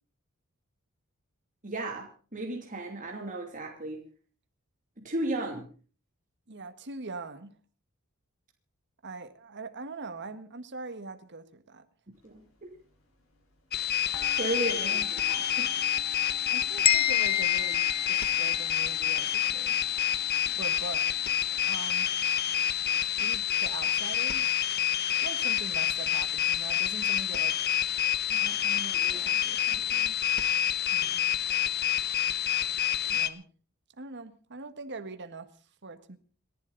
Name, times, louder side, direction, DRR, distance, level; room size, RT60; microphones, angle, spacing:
voice 1, 1.6-4.0 5.0-5.7 12.2-12.7 14.3-15.7 28.3-29.2 29.6-29.8, right 1 dB, 35° right, 1 dB, 2.9 m, -35 dB
voice 2, 6.5-7.5 9.0-11.9 14.8-15.3 16.5-19.8 20.5-21.2 21.7-22.1 23.2-24.6 25.1-27.6 29.1-30.2 30.9-31.3 33.1-33.4 34.0-35.5 35.8-36.2, right 3 dB, 55° right, 9 dB, 1.8 m, -42 dB
sound 1, 12.2-12.4 12.7-13.7 14.1-22.9, left 4 dB, 70° left, 6.3 m, -49 dB
sound 2, 13.7-33.3, left 11 dB, 50° left, 1.2 m, -28 dB
sound 3, 16.8-18.9, left 10 dB, 25° left, 0.8 m, -28 dB
29.5 x 11.5 x 4.1 m, 0.39 s
head